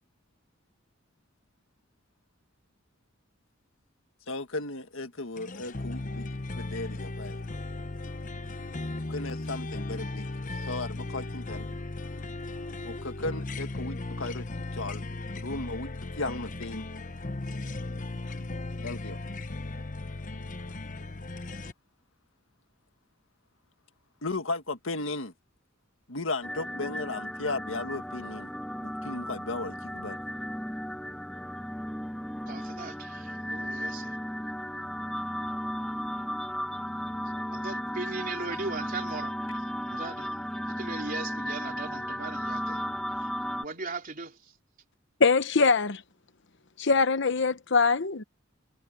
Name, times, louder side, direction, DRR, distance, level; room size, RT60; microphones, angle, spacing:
voice 1, 4.3-7.4 9.1-10.3 10.5-11.7 12.8-14.5 14.7-15.0 15.3-16.8 18.8-19.2 24.2-25.3 26.1-28.5 28.8-30.2, left 2 dB, 80° left, 1.8 m, -35 dB
sound 1, 5.4-21.7, left 2 dB, 40° left, 1.1 m, -36 dB
sound 2, 26.4-43.6, equal, 5° left, 4.5 m, -35 dB
voice 2, 32.4-34.2 37.5-39.3 39.9-40.3 40.6-42.8 43.2-43.3 43.6-44.6, right 3 dB, 45° right, 3.5 m, -38 dB
voice 3, 45.2-46.0 46.8-48.2, left 4 dB, 65° left, 0.9 m, -23 dB
head